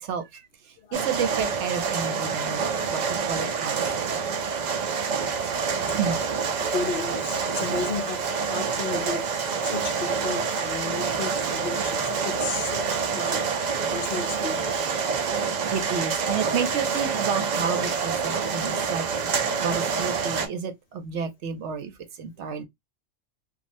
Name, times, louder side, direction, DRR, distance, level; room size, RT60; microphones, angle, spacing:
sound 1, 0.9-20.5, right 5 dB, 55° right, 0.5 m, -27 dB
voice 1, 0.9-3.0 3.3-4.1 6.0-6.2 15.7-19.1 19.6-21.9 22.2-22.6, right 6 dB, 70° right, 1.0 m, -30 dB
voice 2, 6.6-13.4 13.9-15.0, left 5 dB, 60° left, 0.7 m, -34 dB
3.1 x 2.4 x 2.6 m
omnidirectional pair, 1.3 m